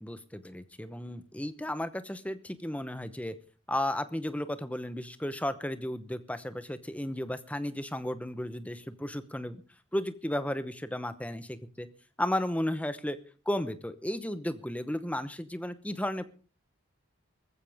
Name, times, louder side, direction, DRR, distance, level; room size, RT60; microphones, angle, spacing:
voice 1, 0.0-3.4 3.7-9.6 9.9-11.9 12.2-13.2 13.5-16.3, left 1 dB, 5° left, 12 dB, 0.9 m, -34 dB
19.5 x 15.0 x 3.6 m, 0.37 s
head